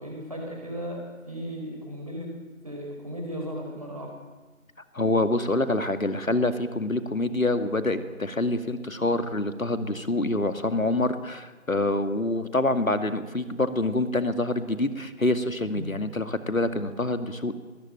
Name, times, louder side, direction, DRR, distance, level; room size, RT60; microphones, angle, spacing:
voice 1, 0.0-2.3 2.6-4.1 15.7-16.0, equal, 25° right, 0 dB, 5.0 m, -36 dB
voice 2, 4.9-17.5, left 2 dB, 70° left, 9 dB, 2.3 m, -26 dB
21.5 x 19.0 x 9.2 m, 1.3 s
figure-of-eight pair, 175°, 42 cm